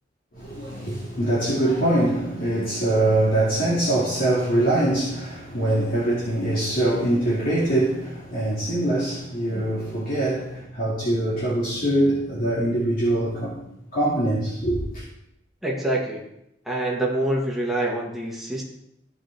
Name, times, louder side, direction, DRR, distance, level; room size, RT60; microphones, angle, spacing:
voice 1, 0.3-13.6 13.9-15.0, right 1 dB, 50° left, 2.4 m, -23 dB
voice 2, 15.6-16.2 16.6-18.6, right 1 dB, ahead, 2.0 m, -26 dB
15.0 x 5.0 x 3.6 m
head